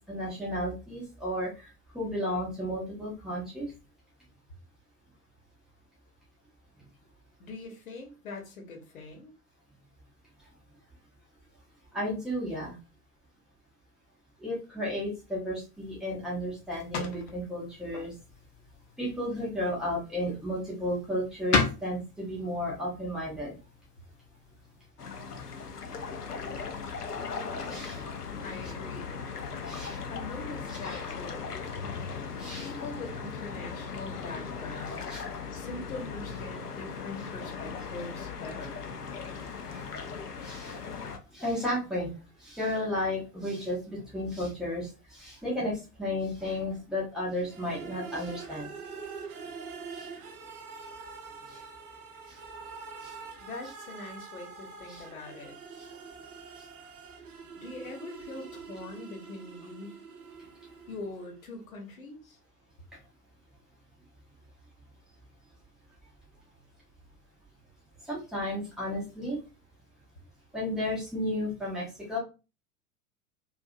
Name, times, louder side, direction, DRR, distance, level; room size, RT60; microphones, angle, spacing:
voice 1, 0.1-3.7 11.9-12.8 14.4-18.1 19.0-23.6 27.6-28.0 29.6-30.0 30.7-31.0 32.4-32.7 35.1-35.2 39.4-39.9 40.4-40.8 41.3-48.7 49.9-50.1 51.5-51.6 52.3-52.4 53.0-53.2 54.9-55.0 55.8-55.9 56.6-56.7 68.0-69.4 70.5-72.2, left 1 dB, ahead, -5 dB, 0.4 m, -33 dB
voice 2, 7.4-9.3 28.4-29.1 30.1-31.5 32.5-35.2 35.5-38.8 53.4-55.6 57.6-60.0 60.9-62.4, left 2 dB, 60° left, 2 dB, 1.0 m, -42 dB
sound 1, 15.7-24.9, left 5 dB, 45° left, 0.7 m, -37 dB
sound 2, 25.0-41.2, left 5 dB, 85° left, 0.5 m, -38 dB
sound 3, 47.5-61.3, right 5 dB, 70° right, 0.7 m, -45 dB
2.6 x 2.5 x 2.4 m, 0.30 s
figure-of-eight pair, 95°, 46 cm